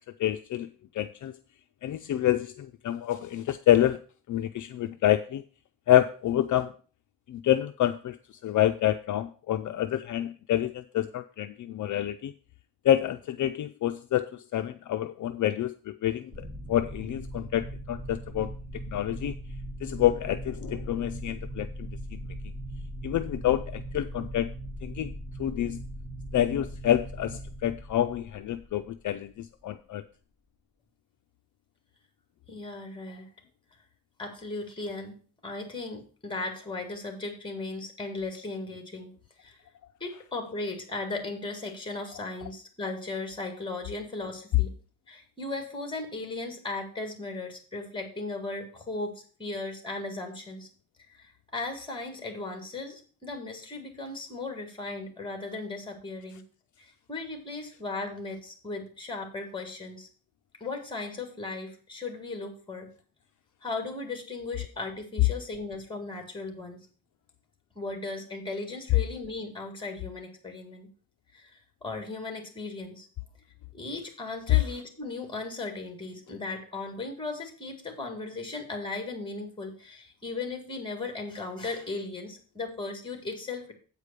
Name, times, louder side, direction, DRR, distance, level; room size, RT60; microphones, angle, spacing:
voice 1, 0.2-0.7 0.9-1.4 1.8-4.0 4.3-5.4 5.9-6.7 7.3-8.2 8.4-12.3 12.8-18.5 18.9-19.3 19.8-22.2 23.0-24.5 24.8-25.1 25.4-25.8 26.3-30.0, left 12 dB, 60° left, 8 dB, 0.5 m, -27 dB
sound 1, 16.3-29.3, right 1 dB, 10° right, 1.7 m, -39 dB
voice 2, 32.5-33.3 34.2-35.2 35.4-39.1 39.4-39.6 40.0-44.7 45.1-50.7 51.1-56.4 56.8-60.1 60.6-62.9 63.6-66.8 67.8-70.9 71.3-73.1 73.7-83.7, left 3 dB, 15° left, 5 dB, 1.9 m, -37 dB
8.2 x 4.9 x 6.7 m, 0.40 s
wide cardioid pair, 160°, 35 cm